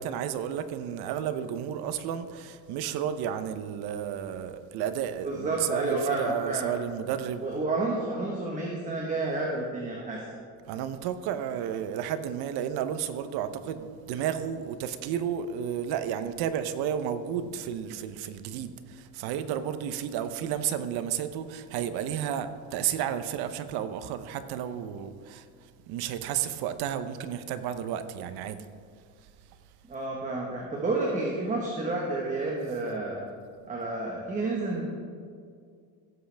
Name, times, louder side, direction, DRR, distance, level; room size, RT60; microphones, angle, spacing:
voice 1, 0.0-7.6 10.6-25.5 25.9-28.6, right 9 dB, 75° right, 0.9 m, -32 dB
voice 2, 5.2-6.7 7.4-10.2 29.9-33.2 33.7-34.8, right 2 dB, 20° right, 1.4 m, -30 dB
16.5 x 7.9 x 3.5 m
cardioid pair, 155°, 38 cm